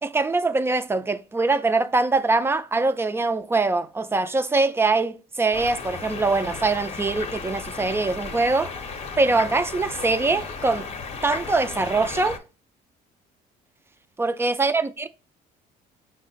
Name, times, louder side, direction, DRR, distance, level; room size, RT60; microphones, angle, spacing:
voice 1, 0.0-8.7 9.2-10.9 11.2-12.4 14.2-15.1, right 3 dB, 15° right, 0.3 m, -23 dB
sound 1, 5.5-12.4, left 5 dB, 40° left, 0.7 m, -34 dB
5.5 x 2.1 x 4.0 m
cardioid pair, 110°, 17 cm